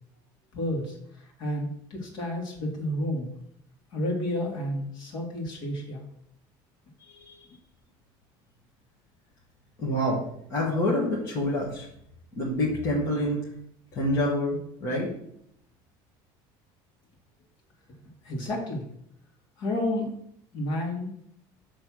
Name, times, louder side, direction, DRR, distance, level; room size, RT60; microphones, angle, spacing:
voice 1, 0.5-3.3 3.9-6.1 18.2-18.8 19.6-20.1 20.5-21.1, left 1 dB, 45° left, 0 dB, 1.8 m, -31 dB
voice 2, 7.0-7.5 9.8-11.9 12.3-13.5 13.9-15.1, left 1 dB, 25° left, -5 dB, 1.3 m, -27 dB
7.1 x 3.2 x 6.1 m, 0.72 s
cardioid pair, 180°, 11 cm